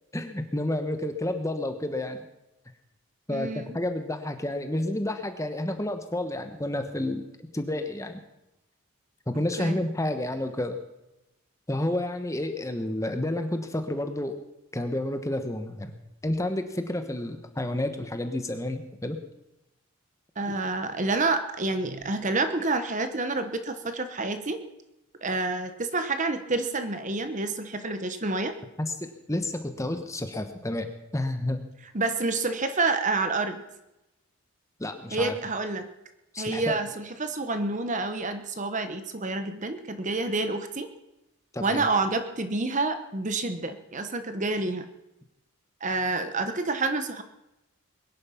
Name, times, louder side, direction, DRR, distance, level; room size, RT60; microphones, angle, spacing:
voice 1, 0.1-2.2 3.3-7.2 7.5-8.2 9.3-10.8 11.7-14.3 14.7-16.0 16.2-19.2 20.5-20.6 28.8-31.6 34.8-35.4 36.3-36.8 41.5-41.9, left 1 dB, 15° left, 7 dB, 1.1 m, -30 dB
voice 2, 3.3-3.8 9.6-9.8 20.4-24.6 25.2-28.5 31.9-33.6 35.1-35.9 36.4-40.9 41.6-44.9 45.8-47.2, right 3 dB, 35° right, 8 dB, 1.1 m, -28 dB
22.0 x 11.0 x 5.8 m, 0.92 s
head